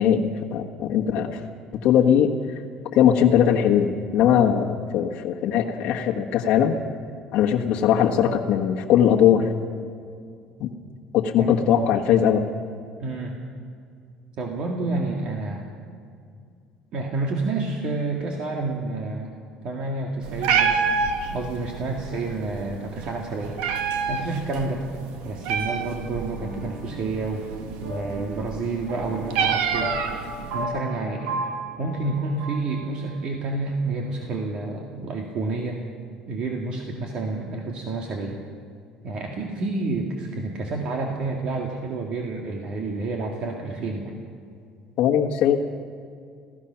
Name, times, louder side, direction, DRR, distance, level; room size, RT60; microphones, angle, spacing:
voice 1, 0.0-1.4 1.7-2.4 2.9-6.8 7.3-9.5 10.6-10.7 11.1-12.5 45.0-45.6, left 9 dB, 55° left, 0 dB, 1.4 m, -20 dB
voice 2, 13.0-13.4 14.4-15.6 16.9-19.4 19.6-20.8 21.3-23.6 24.1-24.9 25.2-27.5 27.8-30.0 30.5-31.4 31.8-35.9 36.3-38.4 39.0-44.1, right 3 dB, 45° right, 0 dB, 2.1 m, -29 dB
Meow, 20.2-30.6, right 6 dB, 85° right, 1.6 m, -28 dB
sound 1, 26.4-33.3, right 1 dB, 65° right, 7.3 m, -36 dB
28.0 x 16.5 x 5.9 m, 2.2 s
cardioid pair, 160°, 2 cm